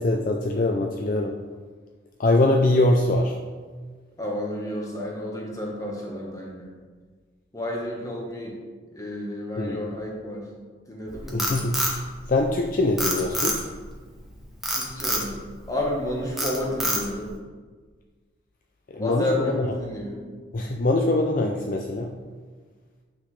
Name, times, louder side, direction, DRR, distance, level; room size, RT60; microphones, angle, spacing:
voice 1, 0.0-1.4 2.2-3.4 9.6-10.0 11.3-12.0 12.3-13.6 18.9-19.7 20.5-22.1, left 2 dB, 45° left, 1 dB, 0.4 m, -23 dB
voice 2, 4.2-6.7 7.5-8.6 8.9-10.5 10.9-11.6 14.7-15.4 15.7-17.3 18.9-20.2, left 1 dB, 15° left, -2 dB, 1.3 m, -31 dB
Frog, 11.1-12.6 13.0-13.9 14.6-15.3 15.8-16.0 16.4-17.3, equal, ahead, 0.9 m, -26 dB
8.7 x 5.9 x 3.2 m, 1.5 s
head